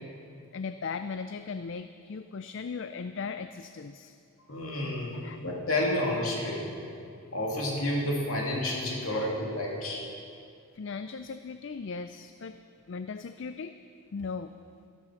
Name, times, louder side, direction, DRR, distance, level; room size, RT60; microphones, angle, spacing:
voice 1, 0.5-4.2 5.1-5.4 9.1-9.2 10.7-12.6 12.9-13.7 14.1-14.5, left 5 dB, 55° left, 10 dB, 0.4 m, -38 dB
voice 2, 4.5-6.7 7.3-10.0, left 1 dB, 70° left, -2 dB, 2.9 m, -30 dB
13.5 x 13.0 x 6.5 m, 2.4 s
head